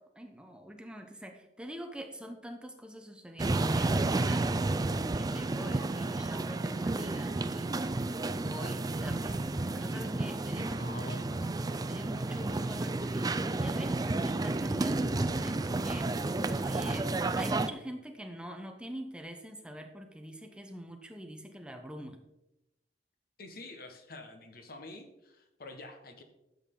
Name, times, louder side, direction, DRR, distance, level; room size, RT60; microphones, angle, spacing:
voice 1, 0.0-7.8 8.4-22.2, equal, 5° right, 4 dB, 0.8 m, -44 dB
sound 1, 3.4-17.7, right 2 dB, 20° right, 0.4 m, -31 dB
voice 2, 10.8-11.3 23.4-26.2, left 2 dB, 60° left, 6 dB, 1.4 m, -47 dB
12.0 x 7.6 x 3.8 m, 0.92 s
head